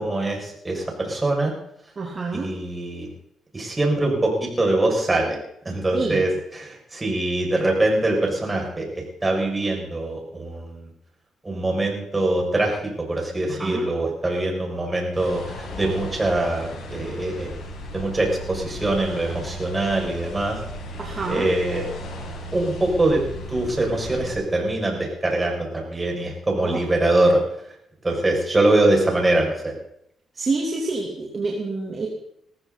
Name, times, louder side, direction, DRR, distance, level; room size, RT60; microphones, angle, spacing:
voice 1, 0.0-1.5 2.3-3.1 3.5-5.4 5.6-10.9 11.4-17.5 17.9-20.6 21.3-21.8 22.5-23.2 23.5-27.4 28.0-29.7, right 2 dB, 20° right, 0 dB, 6.4 m, -23 dB
voice 2, 2.0-2.5 5.9-6.2 13.5-13.9 21.0-21.5 26.6-26.8 28.6-28.7 30.3-32.1, right 3 dB, 40° right, -1 dB, 3.1 m, -27 dB
sound 1, 15.1-24.4, equal, 70° left, 6.3 m, -36 dB
20.0 x 15.0 x 4.1 m, 0.74 s
cardioid pair, 90°, 0 cm